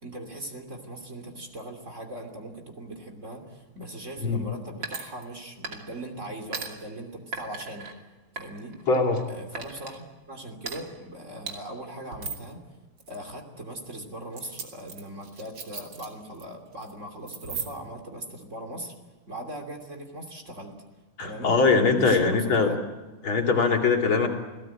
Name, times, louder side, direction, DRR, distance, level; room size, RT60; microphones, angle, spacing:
voice 1, 0.0-7.9 8.3-8.8 9.3-12.6 13.1-18.9 19.3-20.8 21.2-21.5 22.0-22.8, right 1 dB, 35° right, 3 dB, 3.3 m, -40 dB
sound 1, 4.8-5.4 5.6-6.0 6.5-6.7 7.3-7.9 8.4-9.2 9.5-9.9 10.6-10.8 11.5-11.6 12.1-12.5 13.0-13.2 14.3-16.4 16.7-16.9 17.3-17.9, right 5 dB, 60° right, 3.3 m, -37 dB
voice 2, 8.9-9.2 21.2-22.7 23.2-24.3, left 4 dB, 65° left, 2 dB, 3.5 m, -22 dB
27.5 x 18.0 x 8.8 m, 1.2 s
omnidirectional pair, 2.4 m